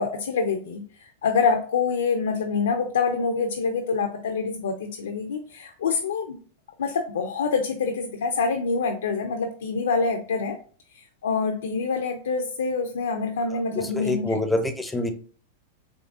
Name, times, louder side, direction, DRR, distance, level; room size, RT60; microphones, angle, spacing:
voice 1, 0.0-6.4 6.8-10.6 10.9-14.4, left 5 dB, 85° left, 3 dB, 0.4 m, -26 dB
voice 2, 13.5-15.1, left 1 dB, 10° left, 7 dB, 0.5 m, -27 dB
3.6 x 3.2 x 2.4 m, 0.42 s
hypercardioid pair, 115°, 0 cm